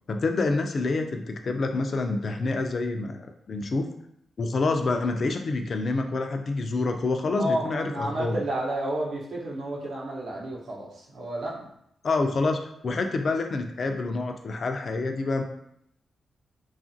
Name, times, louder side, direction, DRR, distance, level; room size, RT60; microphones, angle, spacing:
voice 1, 0.1-3.9 4.4-8.4 12.0-15.4, left 3 dB, 55° left, 5 dB, 0.3 m, -27 dB
voice 2, 7.4-11.7, right 1 dB, 80° right, -3 dB, 0.8 m, -31 dB
2.8 x 2.4 x 2.6 m, 0.75 s
cardioid pair, 90°, 0 cm